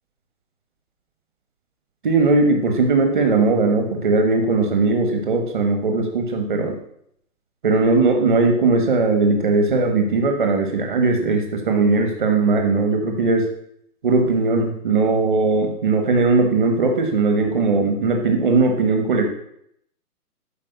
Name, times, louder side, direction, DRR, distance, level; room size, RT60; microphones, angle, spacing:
voice 1, 2.0-6.8 7.6-13.4 14.0-19.3, right 3 dB, 35° right, 4 dB, 1.3 m, -19 dB
12.0 x 4.8 x 7.9 m, 0.73 s
hypercardioid pair, 170°, 46 cm